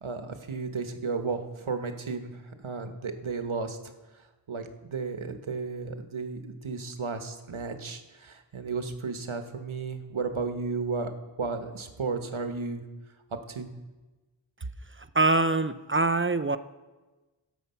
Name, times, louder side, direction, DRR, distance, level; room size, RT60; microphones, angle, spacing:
voice 1, 0.0-3.8 4.5-11.1 11.4-12.8 13.5-13.7, right 4 dB, 70° right, 7 dB, 1.2 m, -33 dB
voice 2, 14.9-16.6, right 3 dB, 25° right, 11 dB, 0.5 m, -24 dB
17.5 x 7.3 x 5.7 m, 1.2 s
wide cardioid pair, 50°, 49 cm